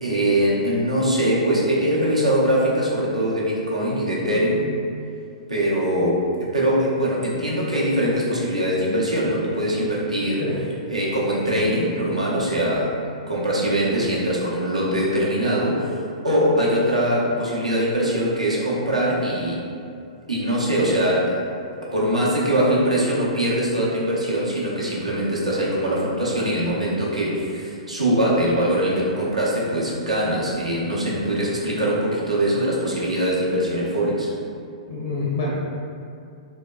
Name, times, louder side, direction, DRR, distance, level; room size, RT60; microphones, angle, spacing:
voice 1, 0.0-4.8 5.5-6.2 6.5-10.4 10.9-12.9 13.3-16.0 16.2-19.6 20.3-21.4 21.9-34.3, right 1 dB, 85° right, -5 dB, 0.7 m, -22 dB
voice 2, 34.9-35.5, left 3 dB, 60° left, -4 dB, 0.5 m, -26 dB
3.6 x 2.1 x 2.2 m, 2.4 s
figure-of-eight pair, 110°, 4 cm